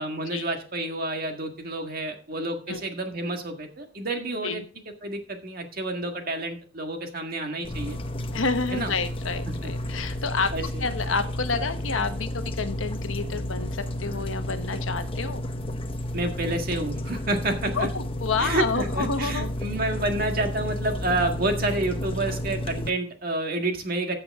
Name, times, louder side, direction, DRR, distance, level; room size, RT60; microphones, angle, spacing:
voice 1, 0.0-4.6 5.0-8.0 8.7-8.9 9.6-9.7 10.5-10.9 16.1-17.9 18.4-24.2, right 2 dB, 45° right, 4 dB, 1.8 m, -29 dB
sound 1, 7.6-22.9, left 1 dB, 25° left, 0.7 m, -32 dB
voice 2, 8.3-10.5 10.8-15.5 17.7-19.5, left 4 dB, 75° left, 9 dB, 1.1 m, -29 dB
14.5 x 6.8 x 3.6 m, 0.39 s
head